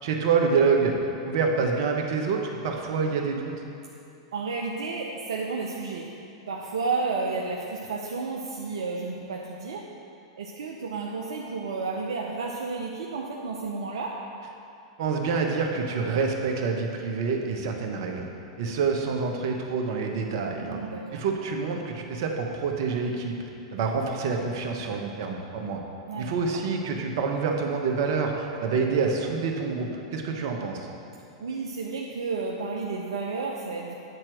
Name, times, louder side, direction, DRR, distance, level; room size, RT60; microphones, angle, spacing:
voice 1, 0.0-3.5 15.0-18.2 18.6-20.8 21.1-23.4 23.7-25.8 26.2-30.9, right 5 dB, 60° right, 2 dB, 1.2 m, -27 dB
voice 2, 4.3-6.2 6.5-9.9 10.4-14.2 20.6-21.3 26.1-26.6 31.4-34.0, right 4 dB, 80° right, -1 dB, 0.7 m, -32 dB
9.5 x 4.5 x 6.3 m, 2.7 s
hypercardioid pair, 110°, 3 cm